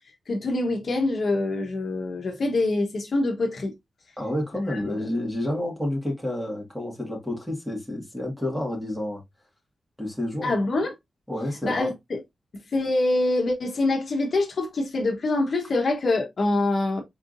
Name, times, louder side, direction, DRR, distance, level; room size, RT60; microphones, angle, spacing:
voice 1, 0.3-3.7 4.7-4.8 10.4-10.9 11.6-12.2 12.5-17.0, left 2 dB, 55° left, 1.1 m, -25 dB
voice 2, 4.2-9.2 10.0-10.6 11.3-11.9, left 1 dB, ahead, 1.9 m, -29 dB
4.6 x 3.6 x 2.6 m
wide cardioid pair, 120°, 0 cm